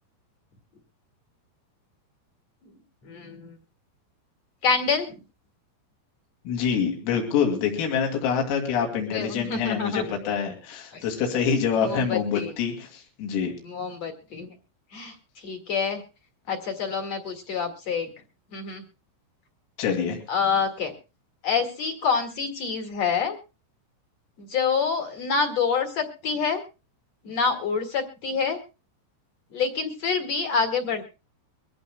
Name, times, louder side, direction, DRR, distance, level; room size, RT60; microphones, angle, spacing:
voice 1, 3.0-3.6 4.6-5.1 9.1-10.0 10.9-11.1 11.8-12.6 13.6-14.5 14.9-16.0 16.5-18.1 18.5-18.8 20.3-20.9 21.4-23.4 24.4-26.6 27.2-28.6 29.5-31.1, left 5 dB, 50° left, 5 dB, 2.1 m, -27 dB
voice 2, 6.5-13.5 19.8-20.2, left 7 dB, 80° left, 2 dB, 5.3 m, -26 dB
23.5 x 16.0 x 2.2 m, 0.32 s
omnidirectional pair, 5.9 m